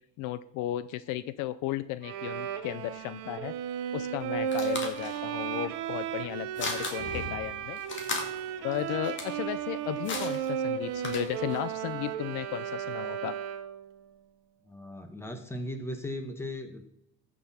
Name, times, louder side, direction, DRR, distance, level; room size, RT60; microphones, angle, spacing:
voice 1, 0.2-3.5 3.9-7.8 8.6-13.4, left 14 dB, 65° left, 16 dB, 0.5 m, -35 dB
Bowed string instrument, 2.0-13.9, right 9 dB, 85° right, 1.1 m, -34 dB
sound 1, 4.0-11.7, left 3 dB, 35° left, 2.1 m, -39 dB
voice 2, 14.6-16.9, left 1 dB, 5° left, 7 dB, 1.3 m, -37 dB
14.5 x 6.2 x 4.3 m, 0.77 s
cardioid pair, 135°, 34 cm